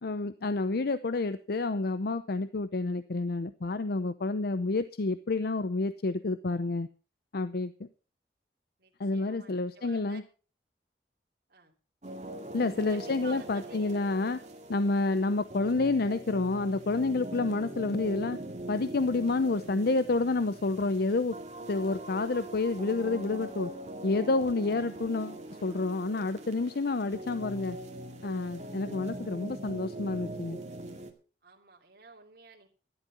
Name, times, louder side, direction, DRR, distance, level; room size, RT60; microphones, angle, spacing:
voice 1, 0.0-6.9 7.3-7.9 9.0-10.2 12.5-14.4 14.7-18.4 18.7-21.3 21.7-23.7 24.0-27.8 28.2-30.6, left 3 dB, 60° left, 13 dB, 0.6 m, -29 dB
voice 2, 8.8-10.2 11.5-11.7 12.9-14.0 31.4-32.7, right 4 dB, 60° right, 0 dB, 2.9 m, -52 dB
sound 1, 12.0-31.1, right 1 dB, 40° right, 2.2 m, -42 dB
13.5 x 11.5 x 5.3 m, 0.37 s
head